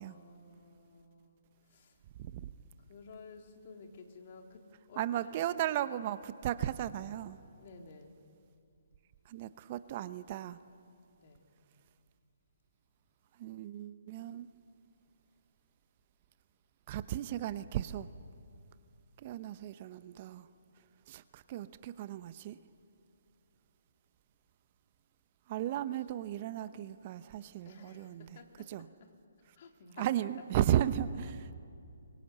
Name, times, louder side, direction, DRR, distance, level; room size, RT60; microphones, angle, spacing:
voice 1, 0.0-1.4 1.7-1.9 2.9-4.6 4.9-5.3 7.6-8.2 11.2-11.5 27.6-29.1 29.6-30.1 31.2-31.3, left 4 dB, 45° left, 3 dB, 3.3 m, -53 dB
voice 2, 2.2-2.5 5.0-7.4 9.3-10.6 13.4-14.5 16.9-18.1 19.2-20.5 21.1-22.6 25.5-28.4 28.7-28.9 30.0-31.6, right 11 dB, 35° right, 13 dB, 0.8 m, -35 dB
24.0 x 23.5 x 8.2 m, 2.4 s
figure-of-eight pair, 140°, 0 cm